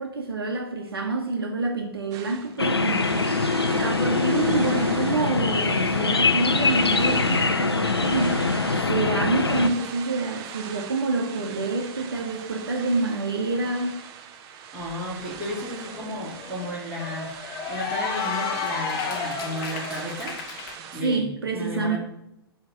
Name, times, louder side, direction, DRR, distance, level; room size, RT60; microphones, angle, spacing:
voice 1, 0.0-8.5 8.9-14.0 21.0-22.0, right 3 dB, 70° right, 1.1 m, -27 dB
sound 1, 2.1-21.0, right 7 dB, 30° right, 0.8 m, -40 dB
sound 2, 2.6-9.7, left 4 dB, 80° left, 0.7 m, -23 dB
voice 2, 14.7-17.3 17.7-20.4 20.9-22.0, equal, 10° right, 3.4 m, -33 dB
Cheering / Applause, 14.9-15.0 15.3-20.8, left 6 dB, 30° left, 1.2 m, -32 dB
9.5 x 3.4 x 6.3 m
figure-of-eight pair, 110°, 13 cm